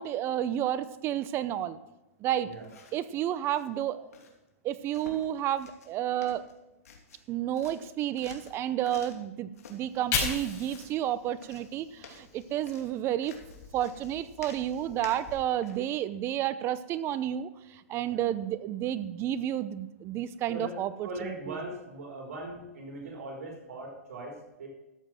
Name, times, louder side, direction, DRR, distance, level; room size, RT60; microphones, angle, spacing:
voice 1, 0.0-1.8 2.2-2.5 2.9-4.1 4.6-6.4 7.3-13.3 13.7-21.6, right 11 dB, 30° right, 15 dB, 0.7 m, -31 dB
sound 1, 2.5-3.1 3.4-3.7 4.1-4.3 4.9-5.3 5.6-6.0 6.2-7.3 7.5-9.3 9.5-9.8 10.2-11.0 11.4-15.9, left 5 dB, 80° left, 2.6 m, -51 dB
Fire, 9.7-12.9 13.3-15.3, left 5 dB, 40° left, 4.6 m, -38 dB
voice 2, 21.0-24.7, right 2 dB, 75° right, 0 dB, 4.0 m, -40 dB
13.5 x 7.6 x 6.1 m, 1.0 s
hypercardioid pair, 135°, 8 cm